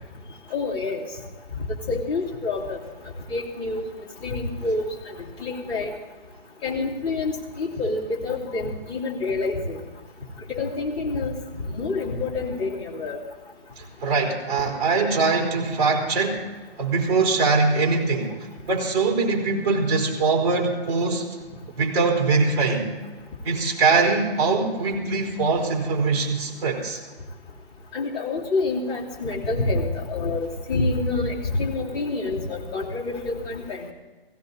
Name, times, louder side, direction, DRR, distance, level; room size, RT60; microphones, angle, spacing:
voice 1, 0.5-1.0 1.9-2.8 3.3-3.8 4.2-6.0 6.6-9.8 10.5-11.3 11.7-13.2 27.9-33.9, left 3 dB, 25° left, -5 dB, 3.2 m, -27 dB
voice 2, 13.8-16.4 16.8-18.3 18.7-21.3 21.8-22.9 23.4-27.0, right 4 dB, 30° right, -1 dB, 4.0 m, -22 dB
17.0 x 16.5 x 4.1 m, 1.3 s
hypercardioid pair, 155°, 30 cm